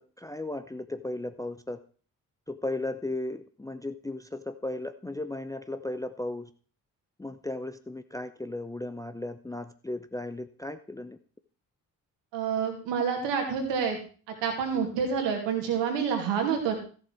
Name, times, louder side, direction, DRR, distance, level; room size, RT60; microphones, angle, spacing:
voice 1, 0.0-1.8 2.5-6.5 7.2-11.2, left 2 dB, 5° left, 11 dB, 0.6 m, -36 dB
voice 2, 12.3-14.0 14.4-16.7, right 6 dB, 65° right, 3 dB, 2.7 m, -28 dB
14.0 x 7.2 x 4.5 m, 0.41 s
figure-of-eight pair, 40°, 46 cm